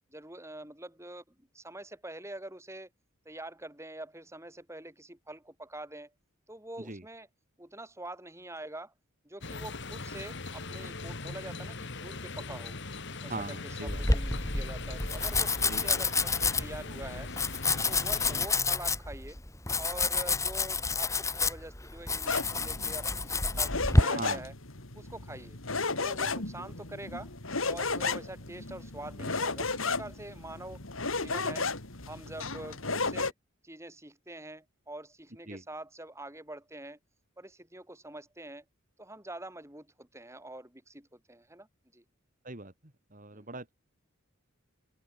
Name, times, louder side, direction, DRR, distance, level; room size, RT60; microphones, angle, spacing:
voice 1, 0.1-2.9 3.3-6.1 6.5-7.3 7.6-8.9 9.2-12.8 13.2-17.3 17.8-19.4 19.8-24.5 24.9-25.6 25.9-27.3 27.6-30.8 31.2-31.7 32.1-33.3 33.6-37.0 37.4-38.6 39.0-41.7 41.9-42.0 43.3-43.5, right 1 dB, 15° right, 5.3 m, -45 dB
sound 1, 9.4-18.5, left 3 dB, 60° left, 2.4 m, -40 dB
voice 2, 13.3-14.0 15.6-16.0 24.2-24.4 35.5-35.6 42.4-42.7 43.1-43.7, right 3 dB, 40° right, 2.2 m, -40 dB
Domestic sounds home sounds, 13.9-24.0, left 3 dB, 15° left, 2.6 m, -29 dB
sound 2, 22.3-33.3, left 4 dB, 75° left, 3.4 m, -34 dB
open air
head